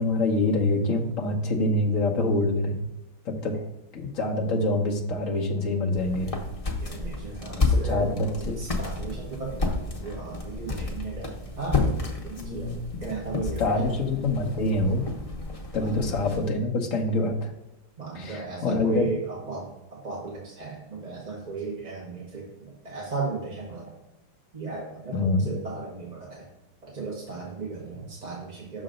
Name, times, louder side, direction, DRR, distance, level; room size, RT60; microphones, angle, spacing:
voice 1, 0.0-2.8 3.2-3.6 3.9-6.4 7.7-8.6 12.4-12.8 13.6-15.1 15.7-17.5 18.1-19.1 25.1-25.4, left 2 dB, 50° left, 0 dB, 1.1 m, -25 dB
sound 1, 5.9-16.5, left 3 dB, 65° left, 0.3 m, -31 dB
voice 2, 6.8-13.9 15.8-16.0 18.0-23.9 24.5-26.5 26.8-28.8, right 4 dB, 30° right, -4 dB, 0.8 m, -36 dB
6.4 x 3.9 x 5.1 m, 0.97 s
omnidirectional pair, 2.2 m